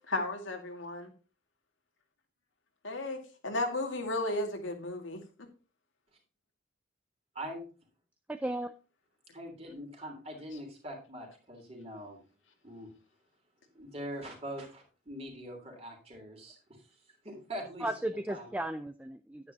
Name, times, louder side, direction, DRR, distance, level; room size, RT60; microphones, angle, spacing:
voice 1, 0.1-1.1 2.8-5.5, left 2 dB, 90° left, 3 dB, 2.1 m, -34 dB
voice 2, 7.3-7.7 9.3-12.2 12.6-12.9 13.7-16.6 17.2-18.5, equal, 30° right, 2 dB, 3.2 m, -43 dB
voice 3, 8.3-8.7 17.8-19.5, right 1 dB, 5° right, 9 dB, 0.4 m, -35 dB
9.9 x 9.6 x 2.8 m, 0.35 s
head